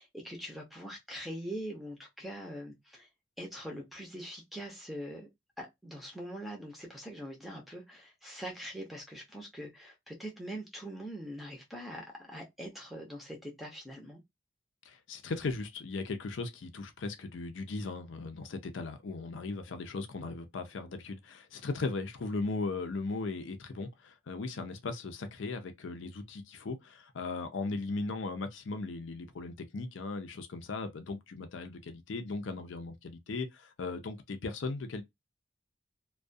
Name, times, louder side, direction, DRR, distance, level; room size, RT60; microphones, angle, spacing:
voice 1, 0.0-3.1 3.4-5.3 5.6-14.2, equal, ahead, 0.6 m, -43 dB
voice 2, 14.9-35.0, left 3 dB, 75° left, 0.5 m, -37 dB
2.3 x 2.2 x 2.5 m
head